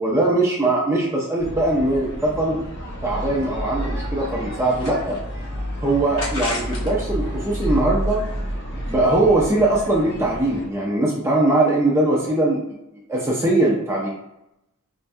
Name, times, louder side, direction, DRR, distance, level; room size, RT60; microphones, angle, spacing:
voice 1, 0.0-2.6 3.0-5.2 5.8-8.2 8.9-12.6 13.1-14.1, right 2 dB, 10° right, -4 dB, 0.5 m, -21 dB
sound 1, 1.4-10.7, equal, 50° left, 1.0 m, -30 dB
sound 2, 4.6-5.5 6.2-7.0 7.4-8.6, left 1 dB, 75° left, 1.2 m, -34 dB
4.5 x 2.2 x 2.6 m, 0.85 s
head